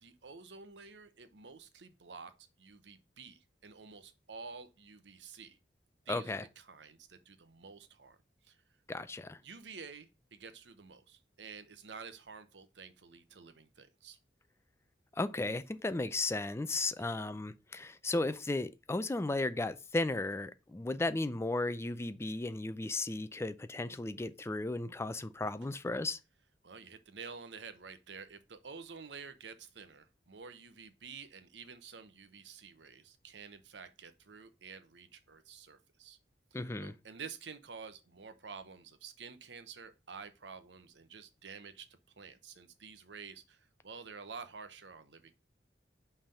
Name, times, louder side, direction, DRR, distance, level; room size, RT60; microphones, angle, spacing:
voice 1, 0.0-2.3 2.6-5.6 6.1-8.2 8.4-8.6 9.4-14.2 17.0-17.2 26.6-36.2 36.8-41.9 42.2-45.3, right 5 dB, 80° right, 0.9 m, -50 dB
voice 2, 6.1-6.4 8.9-9.4 15.1-26.2 36.5-36.9, left 2 dB, 15° left, 0.4 m, -35 dB
5.6 x 3.4 x 5.3 m
head